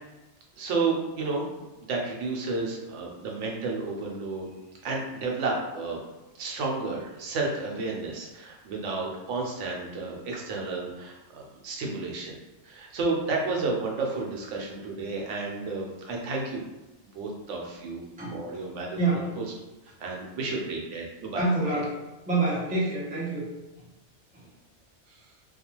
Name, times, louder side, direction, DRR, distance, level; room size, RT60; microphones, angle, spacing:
voice 1, 0.6-1.5 1.8-4.5 4.8-6.0 6.4-16.6 17.1-18.0 18.3-19.4 20.0-21.4, right 3 dB, 85° right, -1 dB, 0.9 m, -31 dB
voice 2, 18.9-19.3 21.3-21.9 22.3-23.4 24.3-24.5, right 2 dB, 10° right, -7 dB, 0.5 m, -26 dB
2.4 x 2.3 x 2.9 m, 1.0 s
omnidirectional pair, 1.2 m